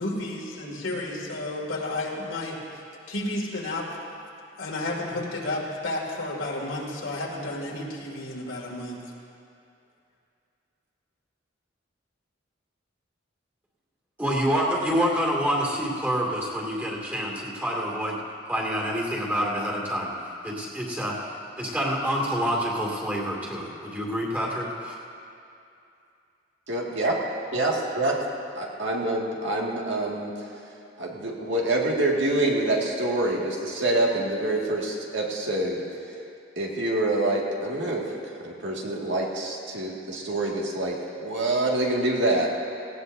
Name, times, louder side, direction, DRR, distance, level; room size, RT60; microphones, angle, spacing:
voice 1, 0.0-2.6 3.1-3.9 4.6-9.1, left 2 dB, 80° left, -2 dB, 2.4 m, -32 dB
voice 2, 14.2-18.2 18.5-24.9, equal, 10° right, -4 dB, 2.3 m, -27 dB
voice 3, 26.7-27.2 27.5-28.2 28.6-30.3 31.0-35.8 36.6-38.1 38.4-42.5, right 2 dB, 65° right, -2 dB, 2.0 m, -26 dB
18.5 x 17.0 x 2.7 m, 2.5 s
head